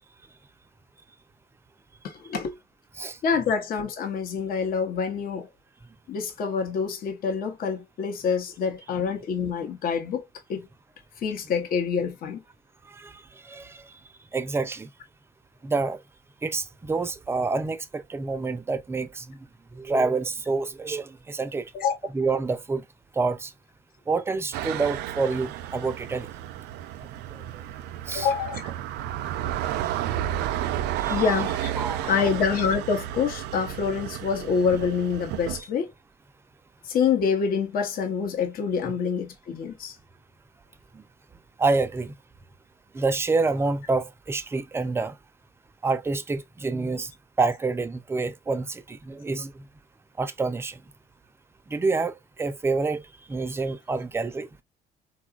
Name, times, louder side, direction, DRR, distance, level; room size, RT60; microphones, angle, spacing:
voice 1, 2.0-2.5 3.2-5.5 6.1-10.2 10.5-10.7 11.2-12.4 21.7-22.0 28.1-28.7 31.1-31.7 32.1-35.9 36.9-39.9, left 6 dB, 60° left, 0.8 m, -26 dB
voice 2, 12.9-14.0 14.3-14.9 15.6-16.0 16.4-19.4 19.7-21.7 22.1-22.8 23.1-23.5 24.1-26.3 27.3-27.6 28.1-28.3 31.0-31.4 31.8-32.2 40.9-41.0 41.6-42.1 42.9-45.1 45.8-47.1 47.4-49.6 50.2-50.8 51.7-53.0 53.3-54.5, right 3 dB, 15° right, 0.4 m, -28 dB
sound 1, 24.5-35.6, right 12 dB, 85° right, 0.4 m, -32 dB
3.8 x 2.3 x 2.3 m
cardioid pair, 110°, 17 cm